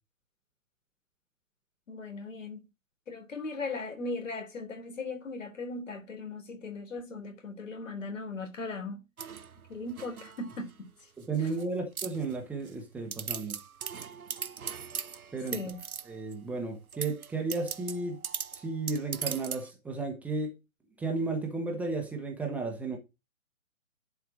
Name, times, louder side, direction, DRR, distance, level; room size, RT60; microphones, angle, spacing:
voice 1, 1.9-2.6 3.1-9.0 9.7-10.7 15.5-15.8, left 3 dB, 65° left, 3.7 m, -38 dB
sound 1, 9.2-10.7 11.2-11.6 12.0-12.7 13.1-16.3 16.9-19.7, right 7 dB, 90° right, 0.9 m, -39 dB
voice 2, 11.2-13.6 15.3-15.6 16.0-18.2 18.5-20.5 21.0-23.0, right 3 dB, 5° right, 0.9 m, -33 dB
11.0 x 4.6 x 6.3 m
figure-of-eight pair, 140°, 42 cm